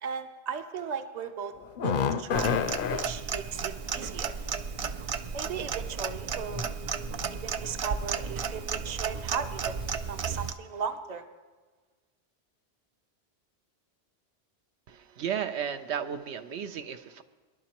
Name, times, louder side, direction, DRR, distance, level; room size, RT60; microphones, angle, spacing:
voice 1, 0.0-1.5 1.8-2.6 2.9-4.4 5.3-6.7 7.3-9.7 10.0-11.2, right 6 dB, 45° right, 7 dB, 0.8 m, -36 dB
sound 1, 1.6-3.1 5.3-5.4 6.3-6.7 7.0-7.3 8.0-8.3 8.7-8.9 9.3-9.4, left 7 dB, 60° left, 0.6 m, -29 dB
Clock, 2.3-10.5, right 6 dB, 60° right, 0.3 m, -34 dB
voice 2, 14.9-17.2, right 8 dB, 80° right, 8 dB, 0.9 m, -34 dB
23.5 x 11.5 x 3.0 m, 1.3 s
omnidirectional pair, 1.1 m